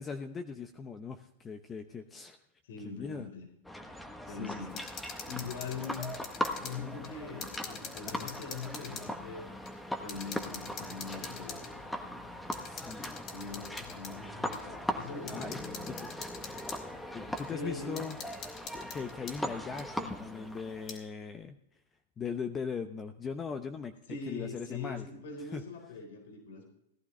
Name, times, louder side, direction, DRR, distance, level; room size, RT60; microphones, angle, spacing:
voice 1, 0.0-2.4 2.8-3.3 4.3-4.8 6.8-7.1 8.0-8.3 12.6-13.3 15.3-15.6 15.9-16.1 17.1-18.1 18.7-21.6 22.2-23.9 24.3-25.1 25.5-25.6, left 5 dB, 20° left, 7 dB, 0.8 m, -40 dB
voice 2, 2.6-3.5 4.2-4.8 5.2-6.1 6.6-9.5 9.9-11.8 13.3-15.8 17.5-18.1 24.1-26.6, left 4 dB, 70° left, 3 dB, 4.2 m, -42 dB
sound 1, 3.6-20.9, left 1 dB, 5° left, 1.3 m, -40 dB
sound 2, 4.7-6.8 7.0-9.1 9.6-9.7 10.1-11.7 12.5-14.1 14.5-14.6 15.3-16.8 17.4-17.5 18.0-19.4 19.8-19.9 20.7-21.0, left 6 dB, 35° left, 3.1 m, -45 dB
17.5 x 11.5 x 3.3 m, 0.76 s
hypercardioid pair, 120°, 0 cm